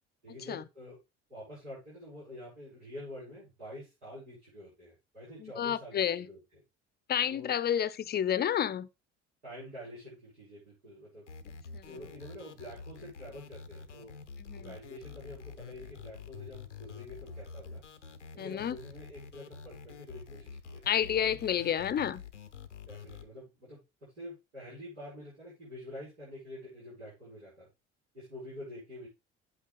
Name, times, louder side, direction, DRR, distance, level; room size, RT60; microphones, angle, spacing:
voice 1, 0.2-1.0 1.3-6.6 7.3-7.5 9.4-11.3 11.8-14.1 14.5-17.8 18.3-21.4 22.9-27.7 28.1-29.1, left 1 dB, 80° right, 6.0 m, -47 dB
voice 2, 5.4-6.3 7.1-8.9 11.7-11.8 14.5-14.7 18.4-18.8 20.9-22.2, left 9 dB, 30° left, 0.6 m, -30 dB
sound 1, 11.3-23.2, left 5 dB, 85° left, 0.6 m, -47 dB
8.3 x 8.2 x 3.5 m
figure-of-eight pair, 50°, 35 cm